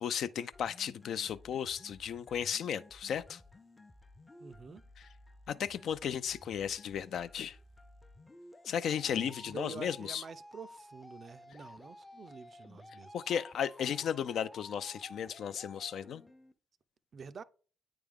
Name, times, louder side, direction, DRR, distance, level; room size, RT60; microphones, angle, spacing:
voice 1, 0.0-3.4 5.0-5.1 5.5-7.6 8.7-10.2 13.1-16.2, left 8 dB, 65° left, 0.4 m, -35 dB
sound 1, 0.5-16.5, left 2 dB, 20° left, 0.6 m, -54 dB
voice 2, 4.4-4.8 9.1-13.1 17.1-17.4, right 5 dB, 50° right, 0.4 m, -48 dB
8.7 x 3.4 x 3.5 m
hypercardioid pair, 55°, 0 cm